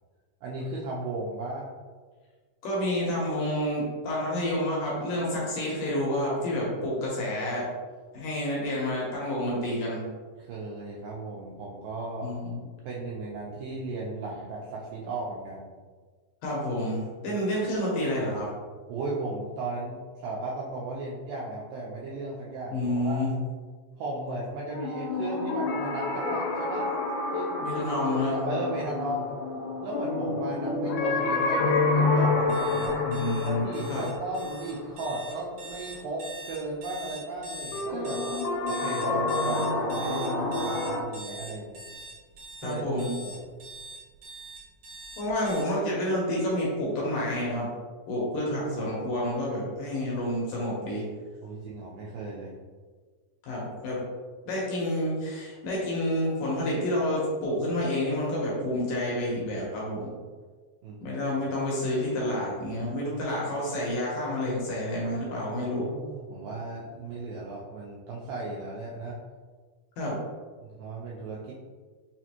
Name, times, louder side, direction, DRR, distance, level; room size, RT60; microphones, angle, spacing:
voice 1, 0.4-1.7 10.4-12.3 12.9-15.7 18.9-23.2 24.0-26.9 27.3-27.5 27.7-29.3 29.8-33.0 33.4-38.2 38.7-41.8 42.6-43.4 51.4-52.5 60.8-61.2 65.7-69.2 70.6-71.5, right 2 dB, 90° right, -5 dB, 2.0 m, -35 dB
voice 2, 2.6-7.7 8.1-10.0 12.2-12.6 16.4-18.5 22.7-23.3 27.6-28.4 33.1-34.1 42.6-43.1 45.2-47.7 48.1-51.0 53.4-54.0 54.5-60.1 61.0-65.9 70.0-70.2, left 1 dB, 70° left, -4 dB, 2.3 m, -29 dB
sound 1, 24.7-35.6 37.7-41.0, left 3 dB, 90° left, 2.6 m, -28 dB
sound 2, 32.5-45.6, right 1 dB, 65° right, 2.0 m, -42 dB
6.0 x 2.5 x 2.8 m, 1.5 s
omnidirectional pair, 4.6 m